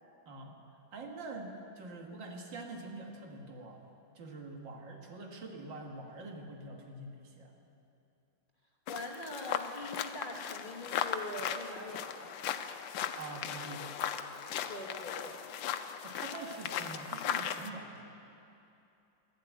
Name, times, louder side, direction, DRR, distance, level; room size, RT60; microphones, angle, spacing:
voice 1, 0.3-0.6 0.9-3.9 4.2-7.5 13.2-13.9 16.0-18.1, right 2 dB, 70° right, 2 dB, 2.2 m, -45 dB
sound 1, 8.9-17.7, left 9 dB, 75° left, 1.4 m, -37 dB
voice 2, 8.9-12.3 14.7-15.4 16.9-17.0, left 2 dB, 30° left, -2 dB, 1.2 m, -43 dB
12.5 x 11.5 x 9.2 m, 2.7 s
omnidirectional pair, 2.1 m